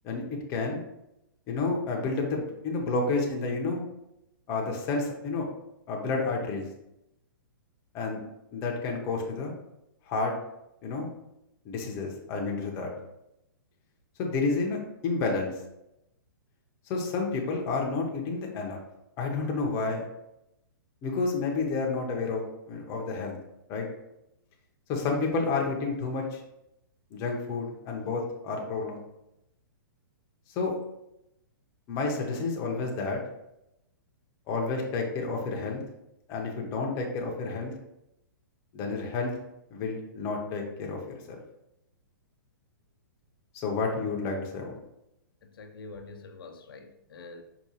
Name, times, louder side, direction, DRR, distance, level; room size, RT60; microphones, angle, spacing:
voice 1, 0.5-0.8 1.5-3.8 4.5-5.5 5.9-6.7 7.9-8.2 8.5-9.5 10.1-10.3 10.8-11.1 11.6-12.9 14.2-15.5 16.9-18.8 19.2-20.1 21.0-22.4 22.7-23.4 23.7-23.9 24.9-26.4 27.1-29.0 30.6-30.8 31.9-33.2 34.5-35.8 36.3-37.7 38.7-39.3 39.7-41.0 41.3-41.4 43.6-44.7, left 3 dB, 25° left, 0 dB, 0.6 m, -30 dB
voice 2, 45.5-47.4, left 3 dB, 85° left, 5 dB, 0.5 m, -45 dB
4.7 x 2.3 x 2.8 m, 0.86 s
hypercardioid pair, 155°, 12 cm